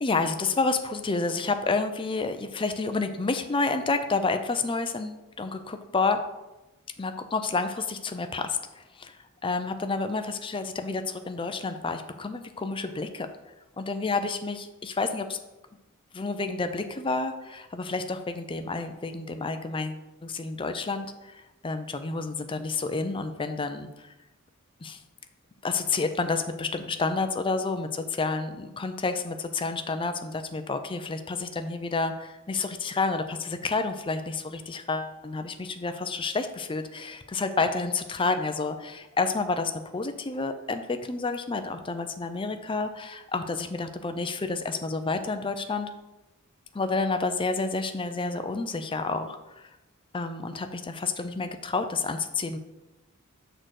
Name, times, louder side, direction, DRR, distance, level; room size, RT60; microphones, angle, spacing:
voice 1, 0.0-6.2 7.0-9.2 9.4-13.3 13.8-15.4 16.1-24.1 24.8-25.0 25.6-45.9 46.7-49.7 50.1-52.6, left 3 dB, 25° left, 8 dB, 0.5 m, -30 dB
6.5 x 3.9 x 6.4 m, 1.0 s
head